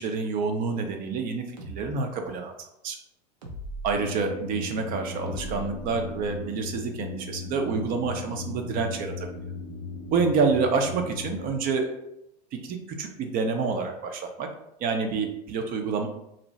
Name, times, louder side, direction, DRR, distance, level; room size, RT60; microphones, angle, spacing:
voice 1, 0.0-2.5 2.8-3.0 3.8-9.3 10.1-11.9 12.5-14.5 14.8-16.1, right 4 dB, 45° right, 5 dB, 0.5 m, -28 dB
sound 1, 1.6-1.8 3.4-3.9 5.3-6.4, right 1 dB, 85° right, 0.6 m, -39 dB
sound 2, 3.9-11.5, left 4 dB, 60° left, 0.5 m, -37 dB
2.6 x 2.0 x 3.0 m, 0.81 s
hypercardioid pair, 100°, 21 cm